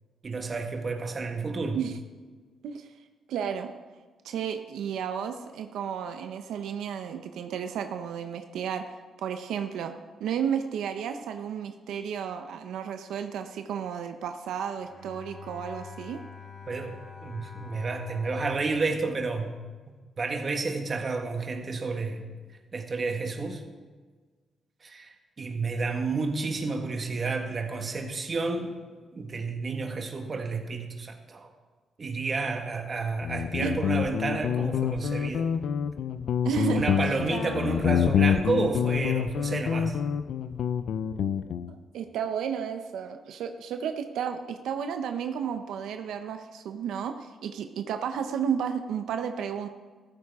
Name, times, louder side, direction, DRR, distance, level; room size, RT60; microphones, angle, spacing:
voice 1, 0.2-1.8 16.7-17.0 17.2-19.5 20.2-22.3 22.7-23.6 24.8-28.8 29.1-31.5 32.0-35.5 36.6-40.0, right 3 dB, 35° right, 4 dB, 1.5 m, -30 dB
voice 2, 3.3-3.7 4.2-8.8 9.2-9.9 10.2-16.2 33.6-33.8 36.4-36.8 41.7-49.7, right 8 dB, 90° right, 7 dB, 0.7 m, -32 dB
Bowed string instrument, 14.7-20.0, left 5 dB, 40° left, 2.6 m, -46 dB
Guitar, 33.2-41.7, left 8 dB, 70° left, 0.5 m, -27 dB
14.5 x 13.0 x 3.6 m, 1.4 s
cardioid pair, 120°, 0 cm